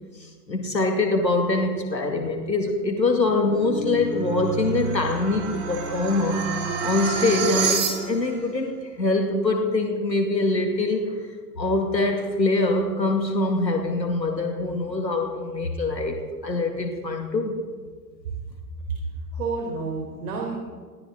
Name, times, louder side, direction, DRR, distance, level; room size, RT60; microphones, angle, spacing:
voice 1, 0.2-6.4 6.8-11.2 11.6-17.6, left 2 dB, 90° left, 3 dB, 2.1 m, -24 dB
sound 1, 3.2-8.4, right 5 dB, 35° right, 5.4 m, -29 dB
voice 2, 19.3-20.5, right 4 dB, 65° right, -1 dB, 3.9 m, -29 dB
21.0 x 17.5 x 3.8 m, 1.5 s
figure-of-eight pair, 95°, 49 cm